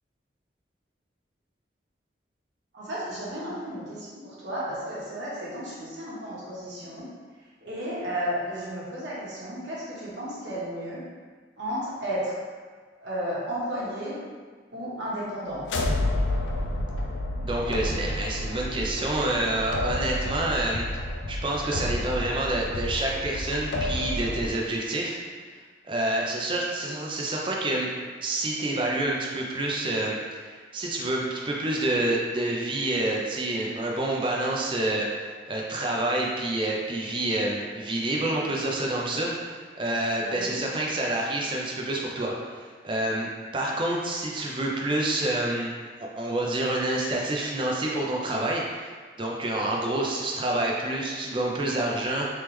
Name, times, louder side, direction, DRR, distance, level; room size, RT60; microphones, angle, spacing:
voice 1, 2.7-7.1 7.6-11.0 11.6-12.4 13.0-14.1 14.7-15.6 40.2-40.6, equal, 85° right, -8 dB, 1.3 m, -33 dB
sound 1, 15.6-24.5, left 1 dB, 80° left, 0.4 m, -30 dB
voice 2, 17.4-20.9 21.3-25.2 25.8-27.9 28.2-35.1 35.5-45.7 46.2-48.9 49.2-52.3, right 1 dB, 30° right, -2 dB, 0.5 m, -28 dB
3.4 x 3.1 x 3.1 m, 1.5 s
head